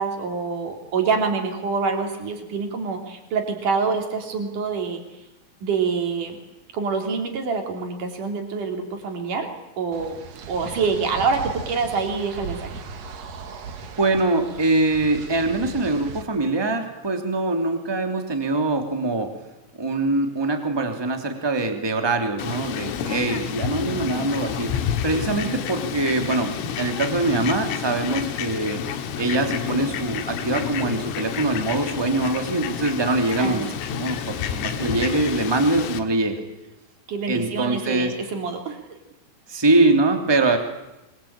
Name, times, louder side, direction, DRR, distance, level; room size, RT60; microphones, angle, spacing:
voice 1, 0.0-5.0 5.6-6.4 6.7-10.2 10.5-12.8 25.3-25.6 33.4-33.6 37.1-38.8, right 5 dB, 45° right, 4 dB, 4.4 m, -26 dB
sound 1, 9.9-16.2, right 5 dB, 60° right, 1.7 m, -37 dB
voice 2, 14.0-19.3 19.8-28.8 29.2-33.7 34.0-36.4 37.3-38.1 39.5-40.6, right 2 dB, 10° right, 5 dB, 1.4 m, -23 dB
Fowl, 22.4-36.0, left 8 dB, 90° left, 4.4 m, -29 dB
25.0 x 23.5 x 8.9 m, 0.96 s
omnidirectional pair, 5.8 m